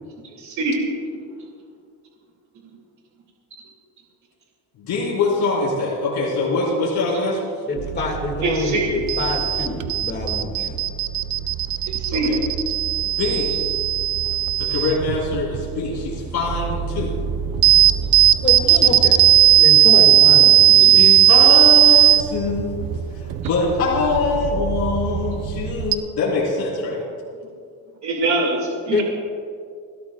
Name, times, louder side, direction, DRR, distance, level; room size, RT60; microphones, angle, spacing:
voice 1, 0.2-0.9 8.4-8.9 11.9-12.3 28.0-29.0, right 2 dB, 50° right, -1 dB, 2.3 m, -23 dB
voice 2, 4.8-7.5 12.1-12.4 13.0-13.6 14.6-17.2 18.8-18.9 20.9-22.8 23.4-27.0, left 3 dB, 90° left, -5 dB, 3.7 m, -23 dB
voice 3, 7.7-10.8 18.4-21.1 28.9-29.0, left 3 dB, 30° left, 1 dB, 1.9 m, -26 dB
sound 1, 7.8-26.0, right 12 dB, 65° right, 0.8 m, -17 dB
29.5 x 13.0 x 2.3 m, 2.3 s
cardioid pair, 170°, 37 cm